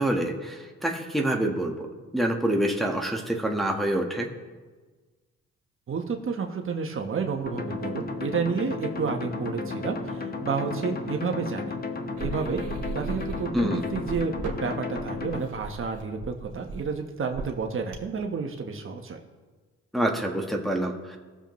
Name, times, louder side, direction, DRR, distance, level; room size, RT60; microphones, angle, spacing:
voice 1, 0.0-1.9 2.1-4.3 13.5-13.8 19.9-21.2, right 1 dB, ahead, 0 dB, 1.4 m, -26 dB
voice 2, 5.9-11.8 12.2-12.6 12.9-19.2, right 5 dB, 45° right, 3 dB, 1.2 m, -30 dB
sound 1, 7.5-15.5, left 3 dB, 30° left, 1.2 m, -34 dB
sound 2, 12.2-18.2, right 4 dB, 75° right, 2.0 m, -37 dB
18.5 x 7.0 x 3.1 m, 1.3 s
cardioid pair, 90°, 30 cm